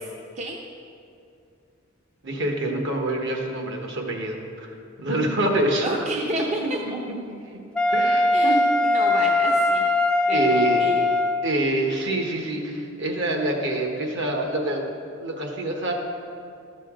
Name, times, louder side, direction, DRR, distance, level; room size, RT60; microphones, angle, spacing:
voice 1, 2.2-5.8 6.6-6.7 7.9-8.6 10.3-10.9 11.4-14.8 15.2-15.9, right 1 dB, 60° right, 2 dB, 1.2 m, -26 dB
voice 2, 5.8-7.0 8.3-9.9 10.3-11.0, right 2 dB, 35° right, 0 dB, 0.6 m, -31 dB
Wind instrument woodwind instrument, 7.8-11.5, left 2 dB, 5° left, 0.4 m, -21 dB
12.0 x 6.7 x 3.7 m, 2.5 s
head